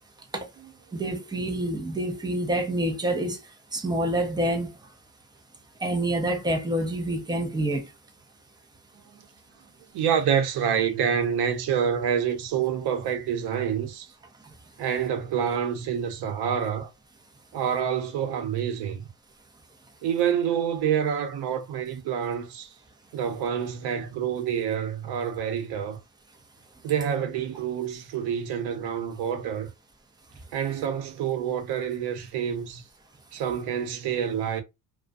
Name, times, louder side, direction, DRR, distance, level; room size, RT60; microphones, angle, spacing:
voice 1, 0.9-3.4 3.7-4.7 5.8-7.9, right 1 dB, 10° right, 0.5 m, -27 dB
voice 2, 9.9-14.1 14.8-16.9 17.5-19.1 20.0-22.7 23.1-26.0 26.8-29.7 30.5-32.8 33.3-34.6, right 8 dB, 80° right, 0.8 m, -27 dB
2.3 x 2.2 x 2.5 m
cardioid pair, 145°, 38 cm